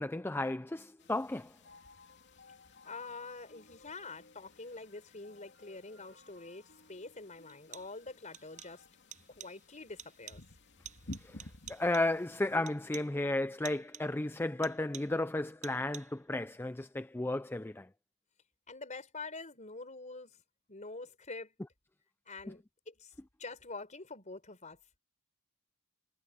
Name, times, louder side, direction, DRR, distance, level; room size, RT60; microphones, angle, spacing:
voice 1, 0.0-1.5 11.2-17.9, left 2 dB, 10° left, 0.4 m, -34 dB
sound 1, 1.0-12.6, left 2 dB, 55° left, 3.0 m, -54 dB
voice 2, 2.8-8.8 9.3-10.4 18.7-20.4 20.7-21.5 22.3-23.1 23.4-24.8, left 3 dB, 35° left, 4.4 m, -46 dB
sound 2, 6.4-6.5 7.5-8.1 8.3-8.9 9.1-9.7 10.0-10.6 10.8-12.2 12.7-13.2 13.6-14.2 14.6-15.3 15.6-16.3, right 10 dB, 35° right, 6.2 m, -51 dB
head